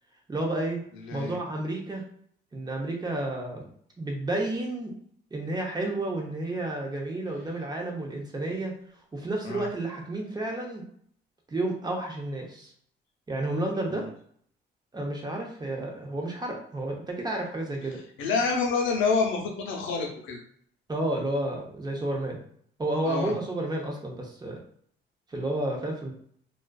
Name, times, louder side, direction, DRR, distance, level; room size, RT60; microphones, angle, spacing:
voice 1, 0.3-0.8 1.1-2.0 2.5-3.7 4.0-4.9 5.3-8.7 9.1-10.8 11.5-12.7 13.3-14.0 14.9-18.0 20.9-22.4 22.8-24.6 25.3-26.1, right 2 dB, 20° right, 0 dB, 0.7 m, -31 dB
voice 2, 1.1-1.4 9.4-9.7 13.9-14.1 18.2-20.4 23.0-23.3, left 4 dB, 90° left, -1 dB, 0.7 m, -27 dB
2.4 x 2.3 x 2.2 m, 0.62 s
cardioid pair, 90°, 20 cm